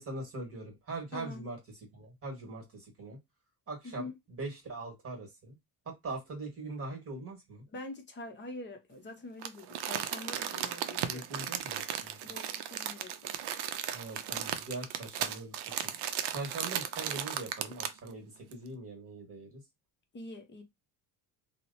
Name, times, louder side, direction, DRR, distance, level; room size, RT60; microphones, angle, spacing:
voice 1, 0.0-1.6 1.9-3.2 3.7-5.6 5.8-7.6 11.1-12.2 13.9-15.8 16.3-19.6, right 2 dB, 30° right, 1.4 m, -42 dB
voice 2, 1.1-1.5 3.8-4.1 7.7-11.3 12.2-13.4 20.1-20.6, left 2 dB, 25° left, 0.6 m, -45 dB
Crumpling crinkling, 9.4-18.1 18.5-18.6, right 10 dB, 65° right, 0.5 m, -36 dB
2.9 x 2.1 x 2.6 m
cardioid pair, 125°, 44 cm